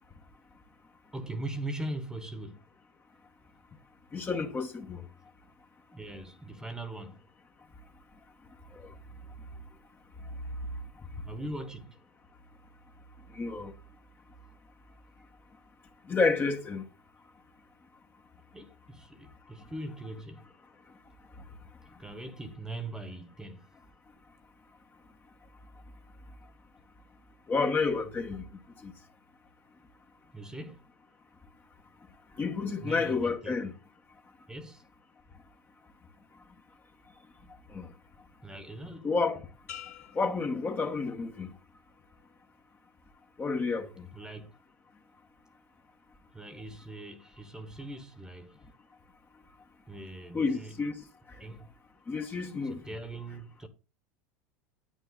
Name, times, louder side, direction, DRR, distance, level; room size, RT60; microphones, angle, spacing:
voice 1, 1.1-2.6 5.9-7.2 11.2-12.0 18.5-20.5 21.8-23.6 30.3-30.8 32.8-33.5 34.5-34.8 38.4-39.1 44.1-44.5 46.3-48.6 49.9-50.8 51.4-51.7 52.6-53.7, right 1 dB, 10° right, 1.6 m, -41 dB
voice 2, 4.1-5.0 13.3-13.7 16.1-16.8 27.5-28.4 28.8-28.9 32.4-33.7 37.7-37.9 39.0-39.5 40.1-41.5 43.4-44.1 50.3-50.9 52.1-52.8, left 4 dB, 25° left, 1.6 m, -30 dB
sound 1, 39.7-41.5 42.0-42.4, left 11 dB, 75° left, 2.8 m, -49 dB
9.9 x 8.8 x 4.0 m
hypercardioid pair, 95°, 9 cm